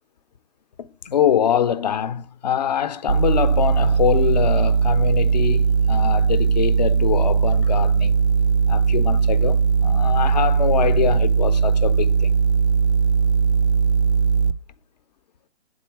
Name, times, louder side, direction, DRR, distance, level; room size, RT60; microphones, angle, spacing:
voice 1, 1.0-8.2 8.7-12.3, left 9 dB, 40° left, 0.6 m, -24 dB
sound 1, 3.1-14.5, right 5 dB, 90° right, 0.6 m, -19 dB
7.1 x 4.2 x 4.5 m
figure-of-eight pair, 140°, 32 cm